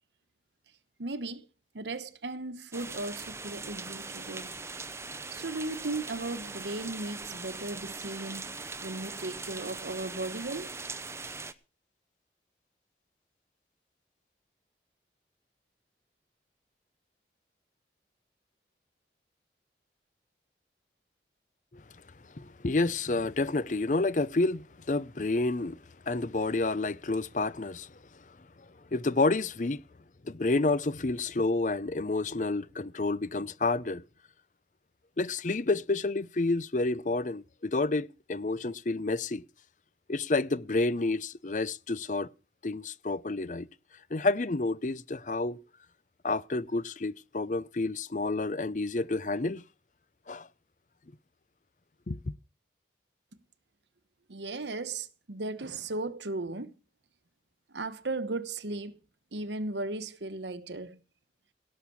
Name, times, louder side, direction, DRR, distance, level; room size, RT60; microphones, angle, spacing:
voice 1, 1.0-1.5 1.7-4.6 5.3-10.7 54.3-56.7 57.7-59.0 59.3-61.0, right 2 dB, 80° right, 1.1 m, -36 dB
sound 1, 2.7-11.5, right 4 dB, 15° right, 0.8 m, -41 dB
voice 2, 22.3-25.8 26.1-28.0 28.9-29.8 30.2-34.1 35.2-39.4 40.1-42.3 42.6-43.7 44.1-45.6 46.2-49.6 50.3-50.5 52.1-52.2, left 3 dB, 45° left, 0.6 m, -29 dB
17.5 x 6.5 x 7.1 m
head